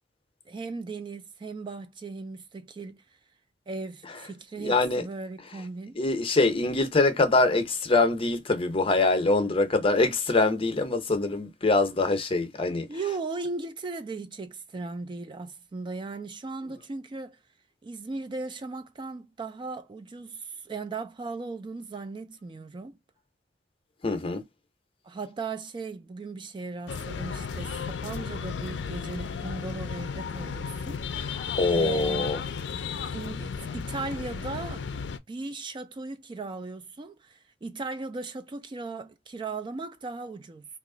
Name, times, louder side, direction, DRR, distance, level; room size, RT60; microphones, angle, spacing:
voice 1, 0.5-3.0 3.7-6.0 12.9-17.4 17.8-23.0 25.0-32.3 33.1-34.8 35.3-40.7, right 3 dB, 25° right, 0.3 m, -37 dB
voice 2, 4.5-5.0 5.9-12.9 24.0-24.4 31.2-32.4, left 3 dB, 30° left, 0.7 m, -24 dB
sound 1, 26.9-35.2, left 6 dB, 70° left, 0.4 m, -34 dB
3.0 x 2.4 x 3.7 m
head